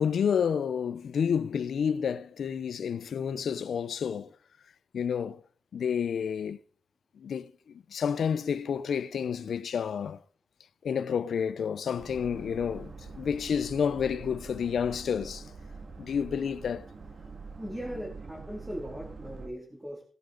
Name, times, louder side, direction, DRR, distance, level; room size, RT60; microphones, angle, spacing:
voice 1, 0.0-4.3 4.9-5.4 5.7-6.6 7.2-10.2 10.8-15.5 16.0-16.9, left 7 dB, 90° left, 0.5 m, -30 dB
Boat Water vehicle, 12.0-19.5, right 4 dB, 55° right, 2.1 m, -45 dB
voice 2, 17.6-20.0, equal, 5° right, 2.6 m, -39 dB
18.0 x 10.0 x 3.9 m
wide cardioid pair, 125°, 0 cm